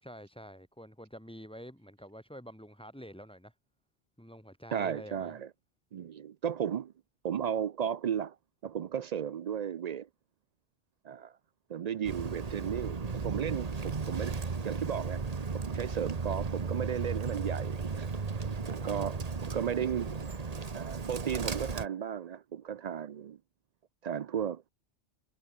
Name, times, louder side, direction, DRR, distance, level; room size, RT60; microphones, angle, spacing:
voice 1, 0.0-3.5 4.2-5.3 18.8-19.1, equal, 5° left, 4.0 m, -48 dB
voice 2, 4.7-5.5 5.9-6.9 7.2-8.4 8.6-10.1 11.0-11.3 11.7-15.2 15.5-18.1 18.7-20.2 20.7-23.4 24.0-24.7, right 8 dB, 60° right, 0.4 m, -35 dB
Bird, 12.0-21.9, right 4 dB, 35° right, 1.2 m, -35 dB
omnidirectional pair, 1.2 m